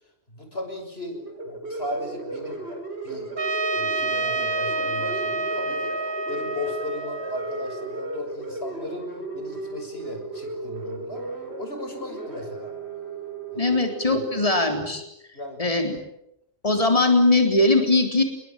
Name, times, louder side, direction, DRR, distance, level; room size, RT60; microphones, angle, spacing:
voice 1, 0.3-1.2 1.4-2.7 3.0-3.3 3.7-9.1 9.3-11.2 11.6-12.7 13.5-13.8 14.1-14.2 15.3-15.6, left 1 dB, 70° left, 5 dB, 6.7 m, -36 dB
sound 1, 1.1-14.9, right 2 dB, 85° right, 5.8 m, -35 dB
Trumpet, 3.4-8.2, right 3 dB, 65° right, 2.0 m, -28 dB
voice 2, 13.6-15.0 15.6-16.0 16.6-18.2, left 2 dB, 35° left, 4 dB, 4.0 m, -20 dB
29.5 x 22.0 x 9.2 m, 0.81 s
omnidirectional pair, 1.1 m